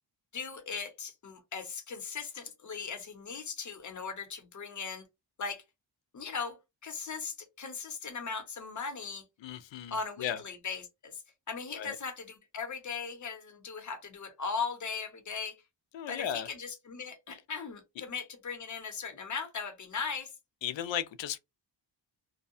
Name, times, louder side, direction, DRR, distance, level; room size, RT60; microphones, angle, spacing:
voice 1, 0.3-5.0 5.4-5.6 6.1-6.6 6.8-9.2 9.9-11.2 11.5-15.6 16.1-20.3, left 5 dB, 40° left, 0.8 m, -38 dB
voice 2, 9.4-10.4 11.7-12.0 15.9-16.5 20.6-21.4, left 9 dB, 80° left, 0.5 m, -35 dB
2.7 x 2.2 x 2.6 m
wide cardioid pair, 100°, 45 cm